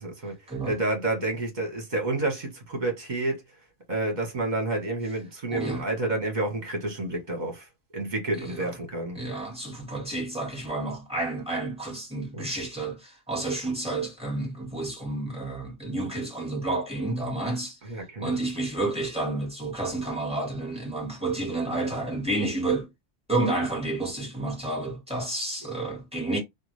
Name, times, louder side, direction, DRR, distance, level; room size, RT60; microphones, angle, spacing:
voice 1, 0.0-0.3 0.6-3.4 3.9-7.7 7.9-9.2 12.3-12.4 17.8-18.3, right 2 dB, 40° right, 1.4 m, -29 dB
voice 2, 5.5-5.8 8.3-8.7 9.1-17.8 18.2-22.9 23.3-26.4, right 2 dB, 5° right, 1.7 m, -30 dB
3.6 x 2.3 x 3.1 m
omnidirectional pair, 1.2 m